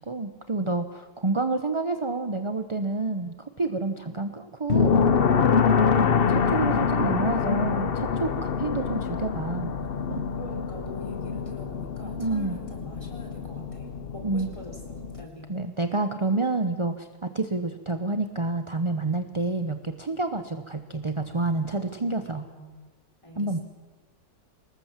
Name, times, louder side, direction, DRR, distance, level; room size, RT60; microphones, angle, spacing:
voice 1, 0.0-5.1 5.9-9.7 10.1-10.2 12.2-12.6 14.2-14.5 15.5-22.4 23.4-23.6, right 3 dB, 25° right, 8 dB, 0.6 m, -29 dB
sound 1, 4.7-15.2, left 6 dB, 45° left, 0.8 m, -25 dB
voice 2, 10.4-15.6 21.7-22.7 23.2-23.6, left 1 dB, 15° left, 2 dB, 4.2 m, -44 dB
24.5 x 20.0 x 7.4 m, 1.3 s
omnidirectional pair, 2.0 m